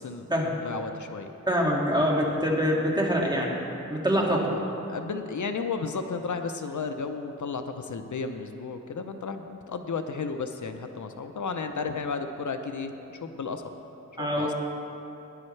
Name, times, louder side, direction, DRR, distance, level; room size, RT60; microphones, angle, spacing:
voice 1, 0.0-1.3 4.9-13.6 14.2-14.5, left 4 dB, 70° left, 7 dB, 0.6 m, -33 dB
voice 2, 1.5-3.6 3.9-4.5 14.2-14.5, equal, 15° right, -2 dB, 2.0 m, -25 dB
17.5 x 10.5 x 3.2 m, 3.0 s
wide cardioid pair, 70°, 31 cm